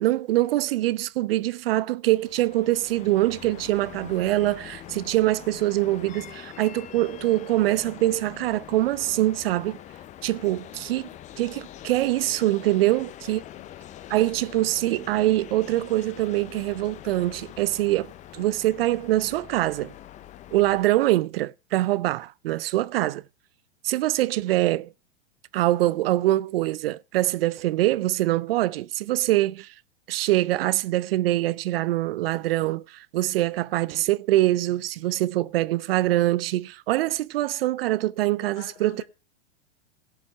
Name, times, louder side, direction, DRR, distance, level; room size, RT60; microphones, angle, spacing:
voice 1, 0.0-9.8 10.2-11.1 11.4-13.4 14.1-18.1 18.3-19.9 20.5-23.2 23.8-24.9 25.5-29.7 30.1-39.0, right 16 dB, 60° right, 0.4 m, -24 dB
sound 1, 2.1-20.9, left 12 dB, 20° left, 0.5 m, -44 dB
voice 2, 12.8-13.8 38.4-39.1, left 9 dB, 55° left, 3.7 m, -48 dB
17.5 x 5.9 x 4.7 m
hypercardioid pair, 105°, 34 cm